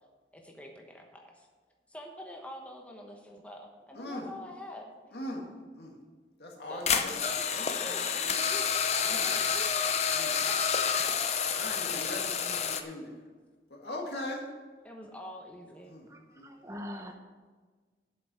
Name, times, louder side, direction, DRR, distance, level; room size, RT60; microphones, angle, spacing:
voice 1, 0.3-1.5 1.9-4.9 6.7-10.8 14.8-15.9, equal, 10° left, 1 dB, 1.1 m, -46 dB
voice 2, 4.0-4.3 5.1-5.4 5.7-5.9 6.4-7.1 7.5-8.0 9.0-9.3 10.1-10.3 11.5-13.2 13.7-14.5 15.9-16.1 16.3-16.7, left 1 dB, 65° left, 0 dB, 2.1 m, -40 dB
sound 1, 6.9-12.8, left 7 dB, 40° left, 0.7 m, -29 dB
voice 3, 16.1-17.2, left 1 dB, 15° right, 4 dB, 0.8 m, -43 dB
8.5 x 6.9 x 7.8 m, 1.4 s
head